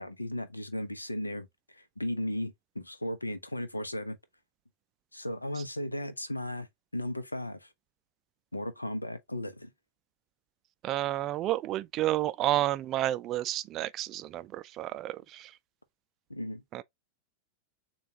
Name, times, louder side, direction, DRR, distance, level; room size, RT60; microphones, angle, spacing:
voice 1, 0.0-4.2 5.1-6.7 6.9-7.7 8.5-9.7 16.3-16.6, left 1 dB, 85° left, 0.7 m, -36 dB
voice 2, 10.8-15.5 16.7-16.8, right 14 dB, 35° right, 0.4 m, -30 dB
6.7 x 2.4 x 2.8 m
figure-of-eight pair, 90°, 0 cm